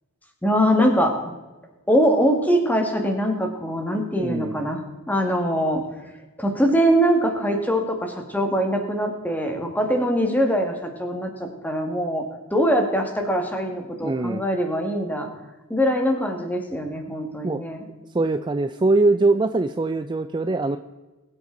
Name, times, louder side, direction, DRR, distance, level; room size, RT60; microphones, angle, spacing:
voice 1, 0.4-1.3 1.9-4.8 5.1-5.8 6.4-12.2 12.5-15.3 15.7-17.9, equal, 10° left, 3 dB, 1.9 m, -22 dB
voice 2, 4.2-4.7 14.0-14.4 17.4-17.6 18.1-20.8, right 2 dB, 20° right, 10 dB, 0.4 m, -22 dB
21.5 x 8.2 x 3.9 m, 1.2 s
head